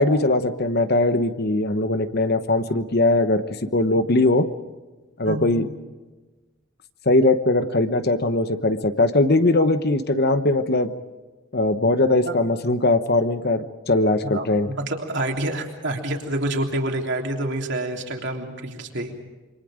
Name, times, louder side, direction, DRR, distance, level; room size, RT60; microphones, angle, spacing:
voice 1, 0.0-3.4 3.7-4.5 5.2-5.7 7.1-10.9 11.5-14.7, left 2 dB, 45° left, 10 dB, 1.0 m, -20 dB
voice 2, 14.2-19.1, right 1 dB, 55° right, 2 dB, 3.3 m, -27 dB
28.0 x 25.0 x 5.1 m, 1.2 s
head